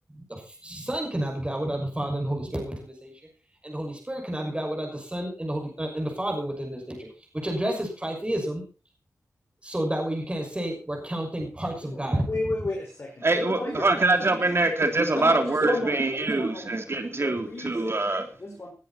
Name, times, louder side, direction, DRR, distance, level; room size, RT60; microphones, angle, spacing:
voice 1, 0.1-3.1 3.6-7.1 7.3-8.6 9.6-12.3, right 1 dB, 20° right, 1 dB, 6.3 m, -30 dB
voice 2, 11.8-14.6 15.1-16.7 17.2-18.1 18.4-18.7, left 2 dB, 45° left, -1 dB, 5.4 m, -34 dB
voice 3, 13.2-18.6, right 2 dB, 45° right, 6 dB, 3.3 m, -24 dB
20.0 x 10.0 x 4.4 m, 0.34 s
cardioid pair, 45°, 6 cm